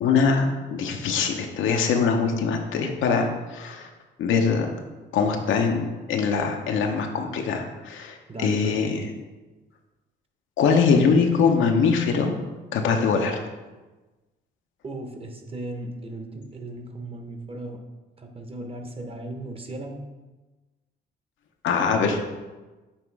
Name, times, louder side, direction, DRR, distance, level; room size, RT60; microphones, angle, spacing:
voice 1, 0.0-3.9 4.2-4.7 5.1-9.0 10.6-12.3 12.7-13.4 21.6-22.2, left 5 dB, 80° left, 3 dB, 0.8 m, -22 dB
voice 2, 8.3-8.9 14.8-17.8 18.2-20.1, right 2 dB, 30° right, 4 dB, 0.9 m, -36 dB
7.1 x 3.0 x 4.7 m, 1.2 s
cardioid pair, 90°, 20 cm